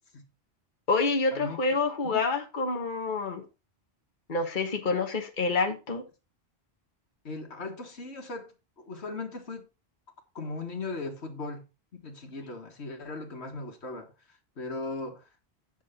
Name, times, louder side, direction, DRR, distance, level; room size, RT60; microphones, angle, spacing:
voice 1, 0.9-3.4 4.3-6.0, left 3 dB, 50° left, 1.4 m, -27 dB
voice 2, 7.2-8.5 8.9-9.6 10.4-11.6 11.9-14.1 14.6-15.2, left 3 dB, 85° left, 1.9 m, -38 dB
8.4 x 7.3 x 4.2 m
omnidirectional pair, 1.1 m